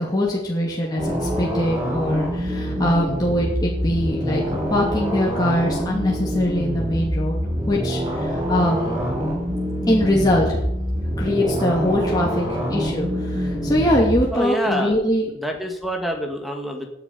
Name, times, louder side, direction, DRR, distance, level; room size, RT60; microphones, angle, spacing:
voice 1, 0.0-4.4 4.7-7.4 7.7-9.1 9.9-10.6 11.2-15.3, left 1 dB, 20° left, -4 dB, 2.6 m, -22 dB
sound 1, 1.0-14.2, equal, 35° right, 7.3 m, -25 dB
voice 2, 14.3-14.9 15.4-16.9, equal, ahead, 3 dB, 1.9 m, -26 dB
17.5 x 10.5 x 5.6 m, 0.84 s
head